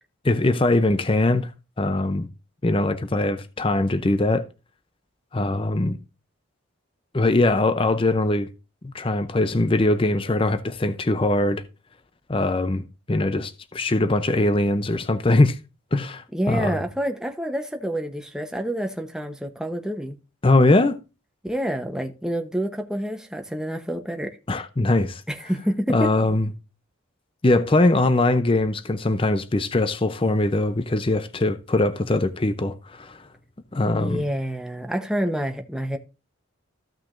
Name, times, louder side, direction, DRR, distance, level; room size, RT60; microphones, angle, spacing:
voice 1, 0.2-1.5 1.8-2.3 2.6-4.4 5.3-6.0 7.1-8.5 8.9-11.6 12.3-15.6 15.9-16.8 20.4-21.0 24.5-25.2 25.9-26.5 27.4-33.2 33.7-34.2, left 2 dB, 25° left, 0.6 m, -21 dB
voice 2, 16.3-20.2 21.4-24.4 25.3-26.1 34.0-36.0, equal, 5° right, 0.9 m, -28 dB
15.0 x 5.9 x 2.6 m
head